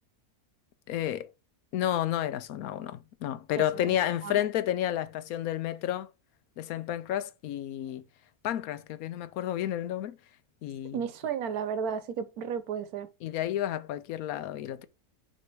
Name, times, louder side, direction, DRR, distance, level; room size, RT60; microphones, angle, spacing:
voice 1, 0.9-1.3 1.7-6.1 6.6-8.0 8.4-10.2 10.6-11.0 13.2-14.9, left 11 dB, 75° left, 1.0 m, -31 dB
voice 2, 3.5-4.4 10.9-13.1, right 7 dB, 80° right, 1.2 m, -33 dB
6.2 x 3.3 x 4.5 m
omnidirectional pair, 1.6 m